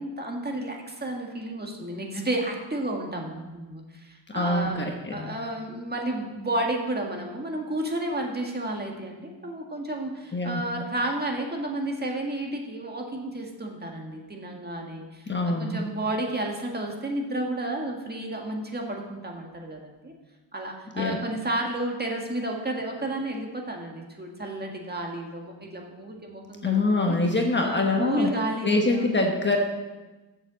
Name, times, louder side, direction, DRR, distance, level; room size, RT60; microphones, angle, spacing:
voice 1, 0.0-20.1 20.5-27.2 27.6-29.2, right 1 dB, 20° right, 1 dB, 1.8 m, -32 dB
voice 2, 4.3-5.4 10.3-10.6 15.3-15.8 21.0-21.2 26.6-28.3 28.6-29.6, left 2 dB, 25° left, 2 dB, 1.3 m, -24 dB
7.6 x 7.1 x 7.4 m, 1.2 s
cardioid pair, 105°, 44 cm